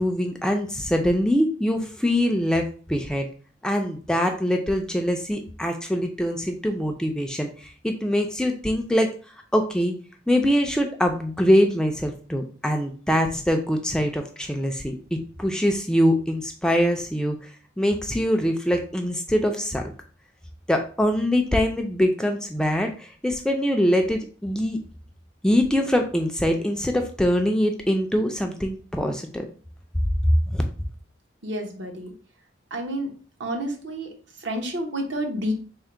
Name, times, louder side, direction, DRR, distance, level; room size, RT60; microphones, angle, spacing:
voice 1, 0.0-3.3 3.6-9.1 9.5-9.9 10.3-17.4 17.8-19.8 20.7-24.8 25.4-29.4 30.2-30.6, equal, 5° left, 3 dB, 0.3 m, -23 dB
voice 2, 31.4-32.1 32.7-33.1 33.4-34.1 34.4-35.5, right 1 dB, 70° right, 3 dB, 0.8 m, -29 dB
3.6 x 2.1 x 4.4 m, 0.41 s
head